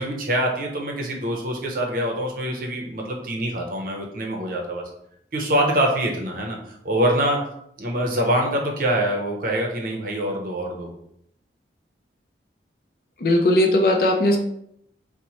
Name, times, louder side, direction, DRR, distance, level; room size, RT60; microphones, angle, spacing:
voice 1, 0.0-4.8 5.3-7.4 7.8-10.9, right 1 dB, 50° right, 1 dB, 0.6 m, -24 dB
voice 2, 13.2-14.4, left 1 dB, 50° left, 3 dB, 0.5 m, -18 dB
3.0 x 2.1 x 4.0 m, 0.74 s
head